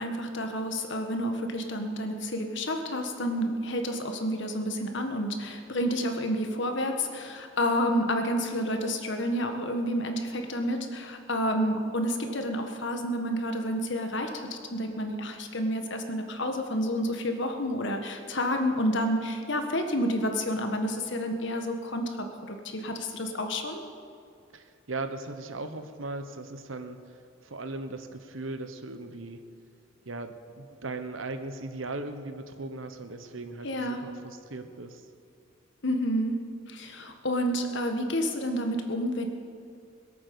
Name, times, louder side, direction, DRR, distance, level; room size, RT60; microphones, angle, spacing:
voice 1, 0.0-23.8 33.6-34.0 35.8-36.4 36.7-39.3, equal, 60° left, 5 dB, 1.6 m, -29 dB
voice 2, 24.5-29.4 30.0-35.1, right 2 dB, 75° right, 8 dB, 1.2 m, -38 dB
21.5 x 8.6 x 7.0 m, 2.4 s
head